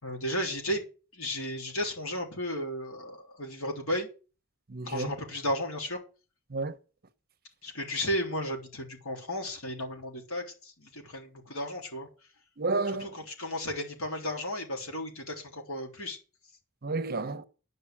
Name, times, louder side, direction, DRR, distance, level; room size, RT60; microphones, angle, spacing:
voice 1, 0.0-0.8 1.1-4.1 4.8-6.0 7.6-12.1 13.0-16.2, left 1 dB, 80° left, 3.5 m, -34 dB
voice 2, 4.7-5.2 6.5-6.7 12.6-13.2 16.8-17.4, right 3 dB, 45° right, 0.9 m, -31 dB
11.0 x 5.4 x 8.5 m
head